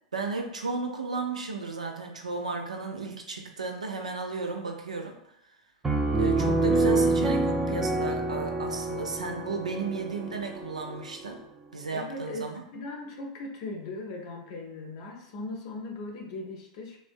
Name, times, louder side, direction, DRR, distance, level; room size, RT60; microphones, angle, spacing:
voice 1, 0.1-5.1 6.1-11.4 11.7-12.6, right 3 dB, 90° right, 3 dB, 0.5 m, -34 dB
Piano, 5.8-11.4, right 2 dB, 15° right, 0.5 m, -27 dB
voice 2, 11.9-17.0, left 2 dB, 55° left, 1 dB, 0.6 m, -39 dB
3.4 x 2.1 x 2.5 m, 0.81 s
hypercardioid pair, 100°, 4 cm